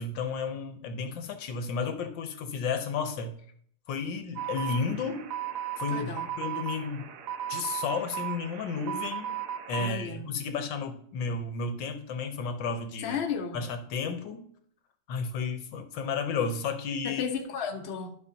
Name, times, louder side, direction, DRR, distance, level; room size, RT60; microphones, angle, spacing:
voice 1, 0.0-3.4 3.9-5.3 5.8-7.1 7.5-9.3 9.7-13.2 13.5-14.4 15.1-17.3, left 5 dB, 80° left, 1.6 m, -32 dB
sound 1, 4.4-9.9, right 10 dB, 60° right, 0.9 m, -36 dB
voice 2, 5.9-6.3 9.8-10.3 13.0-13.6 17.0-18.1, left 6 dB, 45° left, 1.0 m, -33 dB
12.0 x 5.8 x 2.8 m
omnidirectional pair, 2.0 m